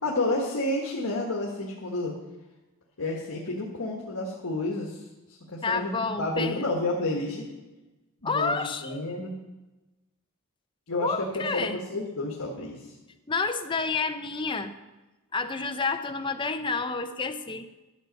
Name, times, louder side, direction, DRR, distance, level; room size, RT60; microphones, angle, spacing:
voice 1, 0.0-2.1 3.0-5.0 5.5-7.5 8.2-9.4 10.9-12.9, left 2 dB, 75° left, -2 dB, 1.5 m, -30 dB
voice 2, 5.6-6.7 8.2-9.0 11.0-11.8 13.3-14.7 15.3-17.7, left 4 dB, 20° left, 7 dB, 0.5 m, -29 dB
11.0 x 7.0 x 5.2 m, 1.1 s
head